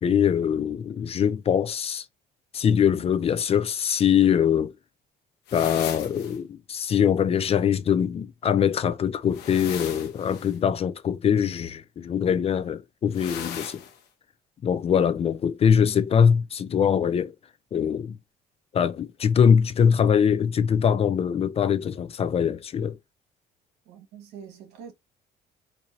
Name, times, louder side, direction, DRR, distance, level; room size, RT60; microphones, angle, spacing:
voice 1, 0.0-2.0 2.5-4.7 5.5-13.8 14.6-17.3 17.7-18.2 18.7-23.0, left 8 dB, 35° left, 0.4 m, -23 dB
sound 1, 5.5-6.4 9.3-10.6 13.1-14.0, left 8 dB, 80° left, 1.0 m, -37 dB
voice 2, 23.8-24.9, right 7 dB, 80° right, 1.7 m, -44 dB
4.5 x 2.6 x 2.7 m
cardioid pair, 110°, 17 cm